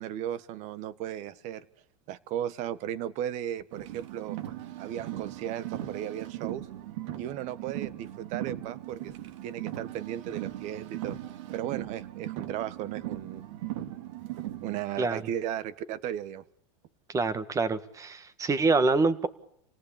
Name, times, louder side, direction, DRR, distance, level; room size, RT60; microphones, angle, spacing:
voice 1, 0.0-1.6 2.1-4.4 4.8-6.7 7.2-9.1 9.4-11.2 11.5-13.4 14.6-16.4, right 11 dB, 45° right, 16 dB, 1.6 m, -35 dB
Car, 3.7-14.8, right 14 dB, 70° right, 2.7 m, -38 dB
voice 2, 17.1-19.3, right 3 dB, 20° right, 13 dB, 1.8 m, -26 dB
28.0 x 18.0 x 8.8 m, 0.71 s
supercardioid pair, 130°, 16 cm